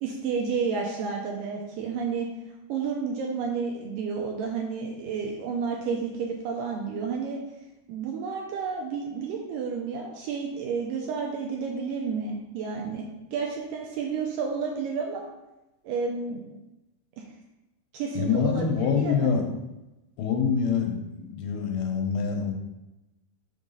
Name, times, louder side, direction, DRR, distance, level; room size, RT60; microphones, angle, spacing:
voice 1, 0.0-2.3 2.7-7.4 7.9-13.1 13.3-15.3 15.8-16.5 17.2-17.3 17.9-19.3, right 5 dB, 80° right, 0 dB, 2.1 m, -31 dB
voice 2, 18.1-19.5 20.2-22.5, left 6 dB, 85° left, 2 dB, 2.8 m, -25 dB
6.0 x 3.8 x 5.4 m, 0.99 s
omnidirectional pair, 4.5 m